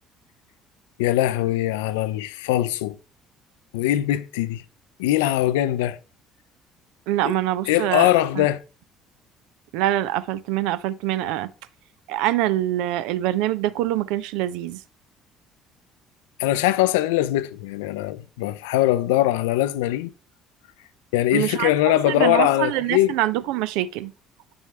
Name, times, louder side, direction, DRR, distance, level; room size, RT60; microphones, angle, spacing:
voice 1, 1.0-3.0 3.7-4.6 5.0-6.0 7.2-7.3 7.7-8.6 16.4-20.1 21.1-23.2, left 14 dB, 75° left, 0.4 m, -21 dB
voice 2, 7.1-8.5 9.7-11.5 12.1-14.8 21.3-24.1, right 14 dB, 70° right, 0.4 m, -25 dB
8.6 x 6.1 x 3.2 m
figure-of-eight pair, 55°, 0 cm